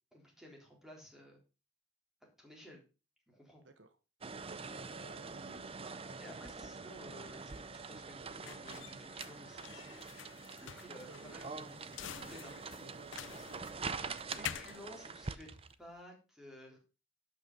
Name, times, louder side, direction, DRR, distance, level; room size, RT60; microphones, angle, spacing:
voice 1, 0.1-1.4 2.2-2.8 3.3-3.6 5.2-5.5 6.0-10.1 10.6-12.9 13.4-13.5 14.3-15.5 15.8-16.8, left 1 dB, 5° right, -1 dB, 3.7 m, -55 dB
voice 2, 3.6-4.0 4.9-5.8 11.1-11.7 12.5-13.9, right 3 dB, 65° right, 8 dB, 1.2 m, -58 dB
sound 1, 4.2-15.7, right 4 dB, 30° right, 0.6 m, -45 dB
sound 2, 6.9-16.0, left 9 dB, 70° left, 0.6 m, -49 dB
12.0 x 6.1 x 5.4 m, 0.32 s
head